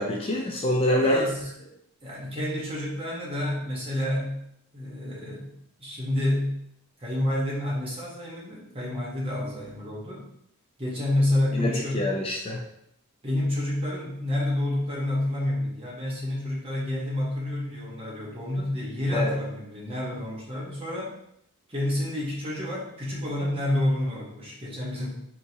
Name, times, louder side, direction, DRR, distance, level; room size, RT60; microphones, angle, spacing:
voice 1, 0.0-1.3 11.6-12.6 19.1-19.3, left 1 dB, 25° left, -1 dB, 0.3 m, -25 dB
voice 2, 1.0-1.7 2.0-4.4 4.7-5.5 5.8-6.5 7.0-10.2 10.8-12.1 13.2-21.1 21.7-25.1, left 1 dB, 25° right, -4 dB, 0.9 m, -29 dB
3.6 x 2.9 x 2.7 m, 0.73 s
head